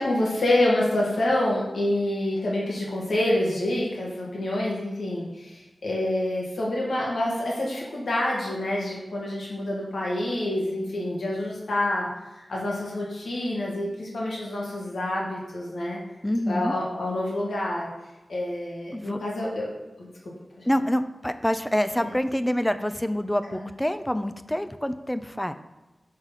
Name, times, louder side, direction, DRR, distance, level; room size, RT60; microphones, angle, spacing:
voice 1, 0.0-16.0 16.5-17.9 18.3-19.7 20.0-20.1 20.6-20.7 23.5-23.6, left 1 dB, 85° left, -4 dB, 1.6 m, -27 dB
voice 2, 16.2-16.7 18.9-19.2 20.6-25.5, equal, 10° left, 10 dB, 0.4 m, -26 dB
6.3 x 3.9 x 5.7 m, 1.1 s
wide cardioid pair, 70°, 0 cm